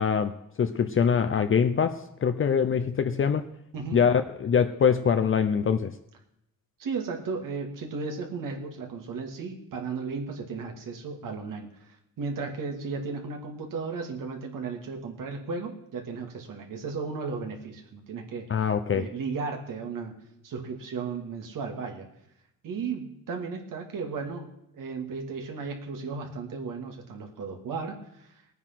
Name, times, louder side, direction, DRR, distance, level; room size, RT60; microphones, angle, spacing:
voice 1, 0.0-3.5 3.9-5.9 18.5-19.1, left 7 dB, 40° left, 9 dB, 0.7 m, -24 dB
voice 2, 6.8-20.2 20.4-22.1 22.6-28.3, right 4 dB, 75° right, 2 dB, 2.5 m, -35 dB
18.5 x 9.4 x 5.9 m, 0.82 s
cardioid pair, 110°, 33 cm